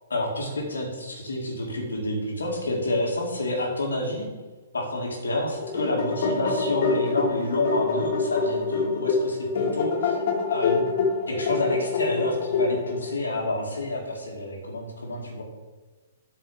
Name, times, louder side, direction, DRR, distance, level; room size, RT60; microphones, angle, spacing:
voice 1, 0.1-4.3 4.7-10.8 11.3-15.4, left 1 dB, 70° left, 0 dB, 2.2 m, -29 dB
sound 1, 5.5-13.1, left 4 dB, 40° left, 2.1 m, -26 dB
8.7 x 4.9 x 6.8 m, 1.3 s
figure-of-eight pair, 115°, 0 cm